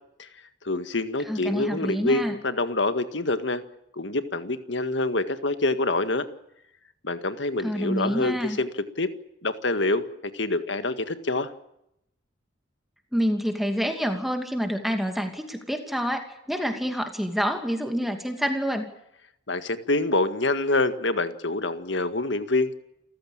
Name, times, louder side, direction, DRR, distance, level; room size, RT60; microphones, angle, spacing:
voice 1, 0.6-3.6 3.9-6.3 7.0-8.7 9.0-9.1 9.4-11.5 19.5-22.8, left 2 dB, 70° left, 10 dB, 1.9 m, -26 dB
voice 2, 1.3-2.3 7.6-8.6 13.1-18.9, equal, ahead, 5 dB, 2.5 m, -27 dB
29.0 x 15.0 x 8.9 m, 0.79 s
head